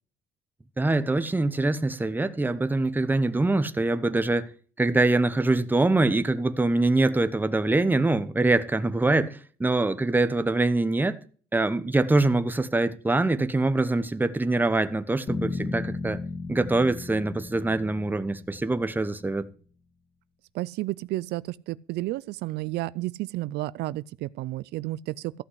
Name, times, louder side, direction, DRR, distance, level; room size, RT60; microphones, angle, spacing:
voice 1, 0.8-4.5 4.8-11.2 11.5-16.2 16.5-19.5, right 2 dB, 10° right, 1.0 m, -24 dB
sound 1, 15.3-19.4, left 3 dB, 30° left, 2.3 m, -35 dB
voice 2, 20.5-25.3, right 17 dB, 80° right, 0.5 m, -31 dB
14.5 x 5.8 x 8.0 m
cardioid pair, 110°, 17 cm